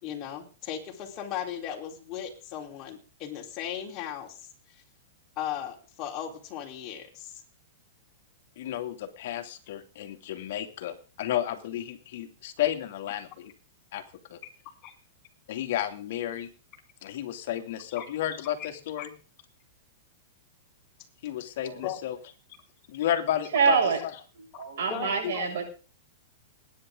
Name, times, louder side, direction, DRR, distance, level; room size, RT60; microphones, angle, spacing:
voice 1, 0.0-4.5 5.4-7.4 14.8-14.9 18.0-18.1 18.6-18.7 19.0-19.1 21.8-22.0 24.9-25.5, left 10 dB, 35° left, 0 dB, 4.1 m, -37 dB
voice 2, 8.6-13.5 13.9-14.0 14.3-14.4 15.5-16.5 17.0-19.1 21.2-22.2 22.9-24.1 25.2-25.3, left 11 dB, 65° left, 5 dB, 2.6 m, -32 dB
voice 3, 23.5-24.0 24.6-25.6, right 6 dB, 75° right, 2 dB, 6.6 m, -25 dB
21.0 x 10.5 x 3.9 m, 0.37 s
hypercardioid pair, 135°, 0 cm